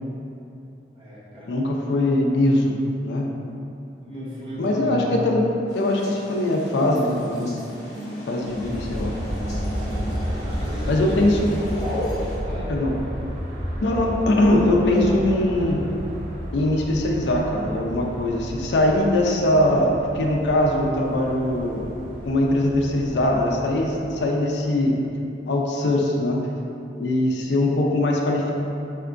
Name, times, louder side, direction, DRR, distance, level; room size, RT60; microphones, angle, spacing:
voice 1, 0.9-1.6 4.0-5.3 8.6-8.7 9.7-11.3 12.5-12.7 14.8-15.3 15.6-15.8, equal, 30° right, -9 dB, 0.7 m, -35 dB
voice 2, 1.5-2.7 3.0-3.3 4.6-5.4 5.7-7.5 8.3-9.1 10.9-11.5 12.7-12.9 13.8-15.8 16.5-25.0 25.5-26.4 27.0-28.5, left 1 dB, 70° left, 0 dB, 0.4 m, -21 dB
sound 1, 5.7-12.4, left 1 dB, 40° left, 1.0 m, -35 dB
Aircraft, 8.4-24.4, equal, 75° right, 0.9 m, -32 dB
3.4 x 2.8 x 2.4 m, 2.8 s
head